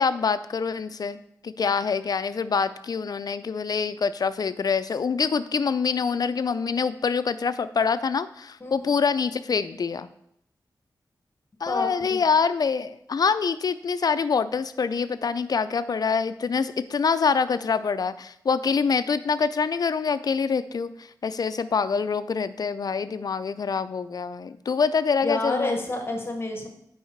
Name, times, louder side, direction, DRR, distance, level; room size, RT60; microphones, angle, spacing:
voice 1, 0.0-10.1 11.6-25.8, left 5 dB, 60° left, 13 dB, 0.4 m, -25 dB
voice 2, 11.7-12.2 25.2-26.7, left 2 dB, 30° left, 3 dB, 1.4 m, -29 dB
9.2 x 4.8 x 4.5 m, 0.74 s
wide cardioid pair, 95°, 7 cm